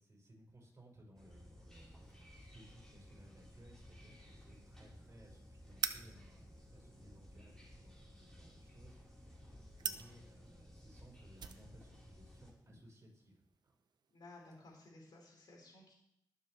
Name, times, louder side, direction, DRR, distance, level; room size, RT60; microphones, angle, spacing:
voice 1, 0.0-13.8, right 1 dB, 40° right, -3 dB, 6.0 m, -61 dB
sound 1, 1.2-12.5, equal, 10° left, 4.4 m, -57 dB
sound 2, 1.7-14.9, right 6 dB, 85° right, 0.7 m, -50 dB
voice 2, 14.1-15.9, left 2 dB, 85° left, -2 dB, 4.8 m, -57 dB
21.5 x 7.5 x 3.4 m, 0.75 s
cardioid pair, 75°, 7 cm